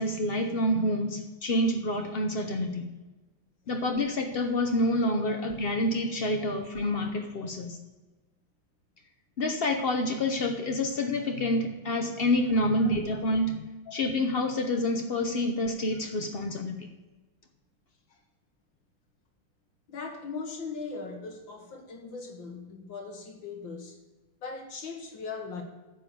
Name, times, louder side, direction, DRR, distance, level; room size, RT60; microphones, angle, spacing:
voice 1, 0.0-2.9 3.7-7.8 9.4-16.9, left 1 dB, 90° left, 4 dB, 0.5 m, -28 dB
voice 2, 19.9-24.0 24.4-25.6, left 4 dB, 65° left, 3 dB, 2.2 m, -39 dB
9.7 x 6.9 x 7.8 m, 1.2 s
omnidirectional pair, 2.3 m